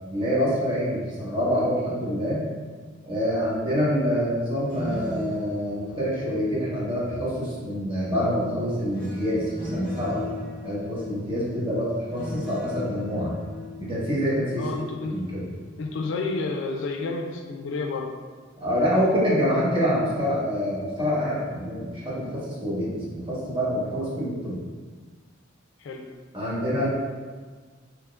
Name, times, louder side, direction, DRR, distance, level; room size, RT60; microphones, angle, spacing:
voice 1, 0.1-2.4 3.1-10.2 10.6-13.3 13.8-14.6 15.1-15.4 18.6-24.6 26.3-26.9, equal, 25° right, -8 dB, 1.1 m, -26 dB
sound 1, 4.5-7.4 8.2-15.1 15.5-15.8, left 2 dB, 25° left, 1.0 m, -38 dB
voice 2, 14.6-15.2 15.8-18.2 25.8-26.1, left 3 dB, 65° left, 3 dB, 0.3 m, -30 dB
3.5 x 2.9 x 2.4 m, 1.5 s
head